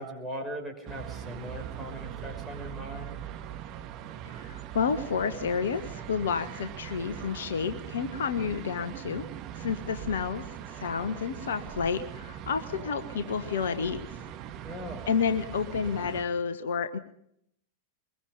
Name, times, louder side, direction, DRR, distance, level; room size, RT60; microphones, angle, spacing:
voice 1, 0.0-3.2 14.6-15.1, equal, 5° left, 2 dB, 5.8 m, -39 dB
sound 1, 0.9-16.2, right 10 dB, 40° right, 2.0 m, -41 dB
voice 2, 4.2-9.2 9.5-14.2 15.1-17.0, left 6 dB, 65° left, 9 dB, 1.1 m, -30 dB
23.0 x 21.5 x 5.3 m, 0.73 s
figure-of-eight pair, 90°, 0 cm